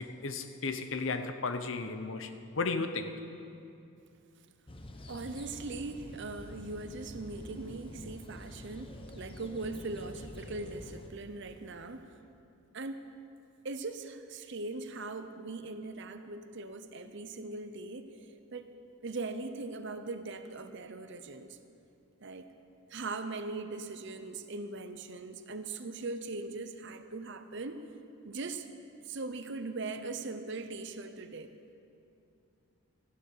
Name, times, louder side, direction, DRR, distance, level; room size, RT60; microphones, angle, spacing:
voice 1, 0.0-3.2, left 4 dB, 60° left, 9 dB, 0.8 m, -34 dB
sound 1, 4.7-11.1, left 1 dB, 25° left, 0.8 m, -47 dB
voice 2, 5.1-12.2 12.7-13.0 13.6-18.2 18.5-18.7 19.0-21.6 22.2-22.5 22.9-27.8 28.2-28.7 29.0-31.5, right 3 dB, 55° right, 9 dB, 0.7 m, -40 dB
14.5 x 10.0 x 6.7 m, 2.6 s
head